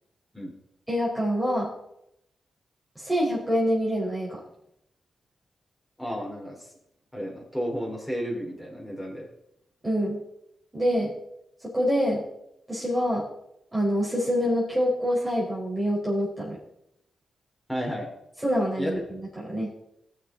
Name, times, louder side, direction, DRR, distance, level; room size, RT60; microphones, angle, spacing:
voice 1, 0.9-1.7 2.9-4.4 9.8-10.2 10.7-11.1 11.6-12.2 12.7-13.3 13.7-16.6 18.4-19.7, equal, 15° right, -7 dB, 5.1 m, -26 dB
voice 2, 6.0-6.7 7.1-9.3 17.7-18.1 18.8-19.0, equal, 5° left, -4 dB, 4.5 m, -32 dB
17.5 x 6.7 x 4.1 m, 0.79 s
cardioid pair, 65°, 0 cm